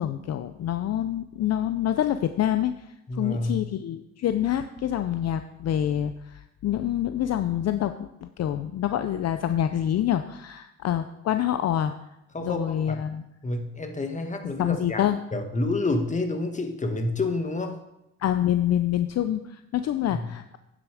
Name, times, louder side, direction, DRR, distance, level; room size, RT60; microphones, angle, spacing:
voice 1, 0.0-2.9 3.1-11.9 12.4-13.2 14.4-15.2 18.2-20.6, left 11 dB, 55° left, 10 dB, 0.5 m, -26 dB
voice 2, 3.1-3.7 12.3-13.0 13.4-15.0 15.3-17.8 20.1-20.3, left 2 dB, 25° left, 6 dB, 1.5 m, -29 dB
9.4 x 7.7 x 5.0 m, 0.88 s
cardioid pair, 90°, 30 cm